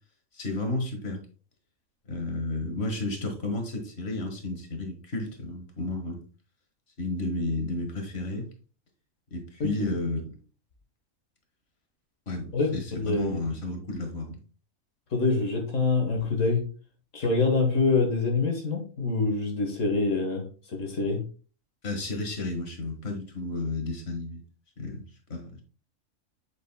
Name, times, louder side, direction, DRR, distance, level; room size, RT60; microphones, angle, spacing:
voice 1, 0.3-1.2 2.1-6.2 7.0-8.5 9.3-10.2 12.3-14.4 21.8-24.4 24.8-25.6, left 2 dB, 50° left, 4 dB, 1.9 m, -32 dB
voice 2, 12.5-13.4 15.1-16.6 17.1-20.4 20.7-21.2, left 3 dB, 65° left, 3 dB, 1.8 m, -25 dB
8.3 x 6.5 x 2.2 m, 0.37 s
omnidirectional pair, 1.4 m